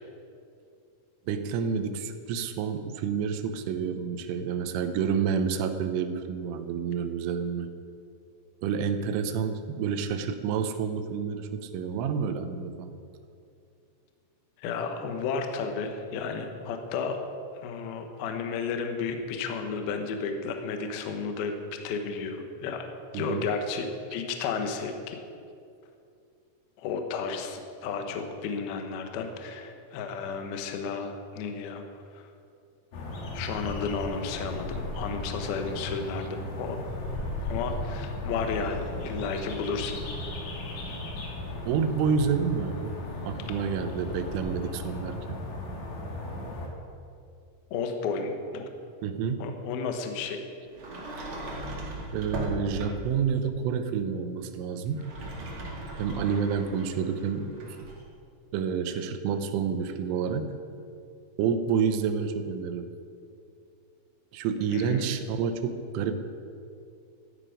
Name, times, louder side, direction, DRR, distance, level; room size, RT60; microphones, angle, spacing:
voice 1, 1.3-7.7 8.6-12.9 23.1-23.6 41.7-43.0 43.2-45.4 49.0-49.5 51.2-51.3 52.1-55.1 56.0-57.8 58.5-60.5 61.4-62.9 64.3-66.2, right 6 dB, 80° right, 8 dB, 3.2 m, -29 dB
voice 2, 14.6-17.2 17.6-21.6 21.8-22.9 23.1-23.9 24.1-25.2 26.8-31.8 32.1-32.3 33.3-36.9 37.4-40.0 47.7-48.7 49.4-50.4 64.7-65.1, left 5 dB, 75° left, 5 dB, 2.3 m, -32 dB
sound 1, 32.9-46.7, left 2 dB, 60° left, 3.4 m, -36 dB
Sliding door, 50.7-53.2 54.9-58.0, right 1 dB, 60° right, 1.3 m, -37 dB
15.0 x 12.0 x 5.1 m, 2.5 s
omnidirectional pair, 6.0 m